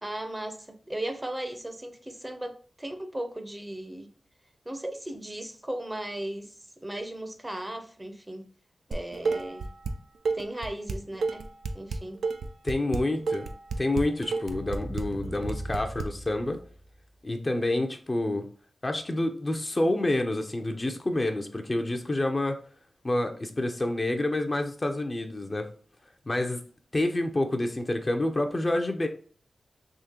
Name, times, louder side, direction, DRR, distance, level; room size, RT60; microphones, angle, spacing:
voice 1, 0.0-4.1 4.7-8.5 8.9-9.7 10.3-11.5 11.7-12.2, right 1 dB, 20° right, 0.6 m, -37 dB
Dishes pots and pans, 8.9-9.9 10.2-16.0, right 4 dB, 85° right, 0.3 m, -31 dB
voice 2, 12.6-13.5 13.8-16.6 17.2-18.5 18.8-22.6 23.0-25.7 26.3-26.6 26.9-29.1, left 1 dB, 35° left, 0.5 m, -28 dB
sound 1, 14.5-17.0, right 1 dB, 65° right, 0.7 m, -39 dB
3.7 x 2.8 x 2.8 m
cardioid pair, 50°, 0 cm